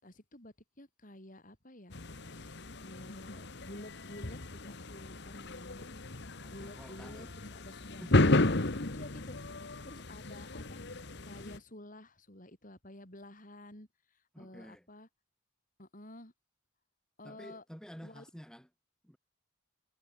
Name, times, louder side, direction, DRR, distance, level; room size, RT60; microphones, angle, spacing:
voice 1, 0.0-2.0 2.3-6.0 6.5-8.4 8.9-10.8 11.2-15.1 15.8-16.3 17.2-17.6 18.0-18.2, left 1 dB, 40° left, 6.2 m, -51 dB
sound 1, 1.9-11.6, left 2 dB, 55° left, 1.5 m, -33 dB
voice 2, 6.4-7.3 14.3-14.9 17.2-18.7 19.0-19.2, equal, 5° left, 5.6 m, -50 dB
head